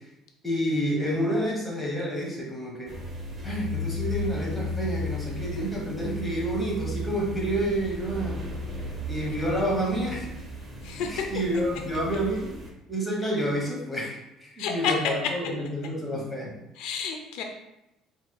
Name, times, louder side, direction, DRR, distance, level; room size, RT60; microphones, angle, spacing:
voice 1, 0.4-2.9 3.4-8.4 9.1-10.3 11.1-12.5 12.9-16.5, right 1 dB, 5° left, -4 dB, 1.0 m, -29 dB
sound 1, 2.9-12.7, left 1 dB, 25° right, 0.6 m, -35 dB
voice 2, 14.6-14.9 16.8-17.4, left 7 dB, 75° left, 3 dB, 0.4 m, -30 dB
4.5 x 3.2 x 2.2 m, 0.91 s
cardioid pair, 155°, 0 cm